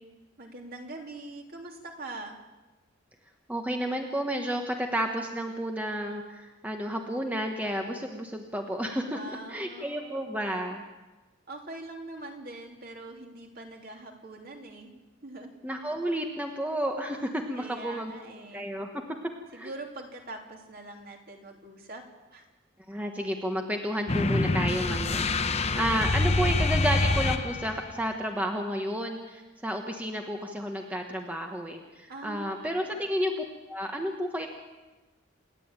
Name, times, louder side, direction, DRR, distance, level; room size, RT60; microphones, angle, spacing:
voice 1, 0.4-2.4 9.1-10.3 11.5-14.9 15.2-15.5 17.6-18.7 19.5-22.0 22.3-22.5 32.1-32.8, right 2 dB, 45° right, 1 dB, 3.2 m, -43 dB
voice 2, 3.5-9.2 9.5-10.8 15.6-18.1 18.5-19.7 22.9-34.5, equal, 10° right, 3 dB, 1.3 m, -31 dB
sound 1, 24.1-27.9, left 2 dB, 30° left, 0.9 m, -26 dB
28.5 x 11.0 x 9.0 m, 1.2 s
head